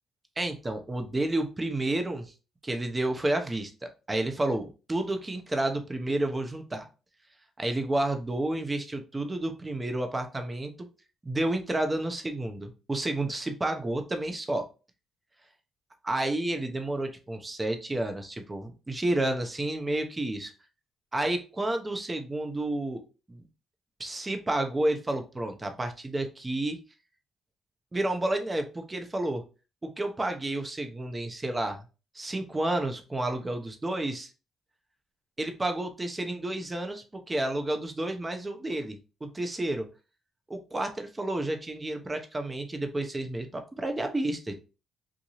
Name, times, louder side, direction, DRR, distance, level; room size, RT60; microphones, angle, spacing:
voice 1, 0.4-2.3 2.6-6.9 7.6-10.7 11.2-14.7 16.0-20.5 21.1-23.0 23.3-23.5 24.0-26.8 27.9-29.4 29.8-31.8 32.1-34.3 35.4-39.9 40.5-44.6, right 1 dB, 20° right, 6 dB, 0.8 m, -30 dB
3.7 x 2.6 x 3.0 m, 0.31 s
cardioid pair, 90°, 0 cm